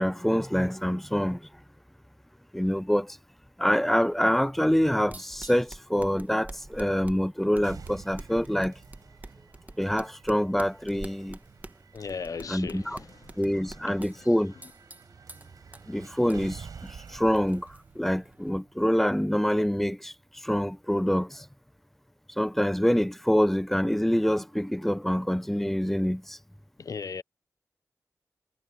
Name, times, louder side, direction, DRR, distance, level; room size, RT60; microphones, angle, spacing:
voice 1, 0.0-1.5 2.5-3.2 3.6-8.8 9.8-11.4 12.5-13.0 13.4-14.5 15.9-21.5 22.4-26.4, equal, 5° left, 0.4 m, -26 dB
sound 1, 4.7-18.5, right 2 dB, 25° right, 1.3 m, -48 dB
sound 2, 7.6-19.6, right 6 dB, 90° right, 4.7 m, -49 dB
voice 2, 11.9-14.0 26.8-27.2, left 5 dB, 65° left, 0.6 m, -38 dB
cardioid pair, 45°, 6 cm